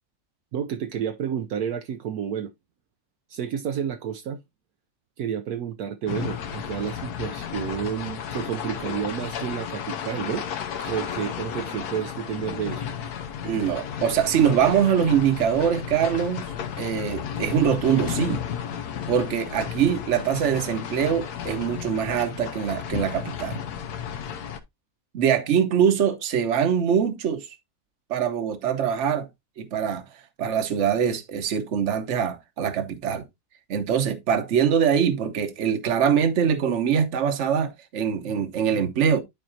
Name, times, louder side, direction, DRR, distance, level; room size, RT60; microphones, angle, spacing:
voice 1, 0.5-2.5 3.3-4.4 5.2-10.5 10.9-12.9, right 8 dB, 75° right, 1.1 m, -30 dB
sound 1, 6.1-24.6, left 8 dB, 80° left, 1.4 m, -33 dB
voice 2, 13.4-16.4 16.8-18.4 19.1-23.6 25.1-27.5 28.1-29.3 29.6-30.1 30.4-33.2 33.7-39.2, right 8 dB, 55° right, 1.2 m, -23 dB
12.0 x 4.5 x 2.7 m
omnidirectional pair, 1.7 m